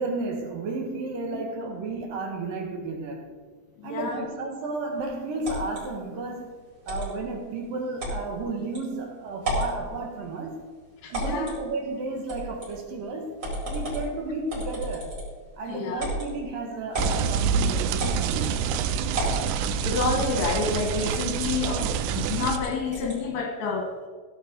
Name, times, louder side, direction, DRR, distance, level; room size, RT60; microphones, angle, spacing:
voice 1, 0.0-3.3 3.8-6.5 6.9-10.6 11.1-13.3 13.6-15.1 15.6-18.6, right 3 dB, 65° right, 2 dB, 2.3 m, -33 dB
voice 2, 3.8-4.3 11.0-11.5 15.7-16.1 19.8-24.0, left 4 dB, 70° left, 3 dB, 2.6 m, -29 dB
sound 1, 5.4-5.8 6.9-7.1 8.0-8.2 8.7-8.8 9.4-9.8 11.1-11.6 12.3-12.7 13.4-14.1 14.5-15.4 16.0-16.3 16.9-17.2 18.0-18.6 19.1-19.5 20.4-20.7 21.0-21.2 21.6-21.9 22.5-23.2, right 1 dB, 20° right, 4.6 m, -31 dB
sound 2, 17.0-22.6, right 7 dB, 90° right, 3.2 m, -27 dB
16.5 x 7.3 x 5.2 m, 1.5 s
omnidirectional pair, 5.8 m